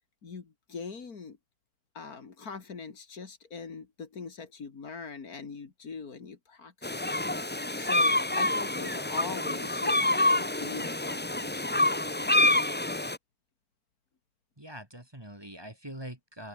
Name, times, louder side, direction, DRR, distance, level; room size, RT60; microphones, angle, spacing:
voice 1, 0.2-1.4 1.9-7.3 7.7-12.3, left 5 dB, 75° left, 2.7 m, -42 dB
sound 1, 6.8-13.2, left 2 dB, 10° left, 0.5 m, -27 dB
voice 2, 14.6-16.5, right 1 dB, 15° right, 2.5 m, -43 dB
open air
omnidirectional pair, 1.6 m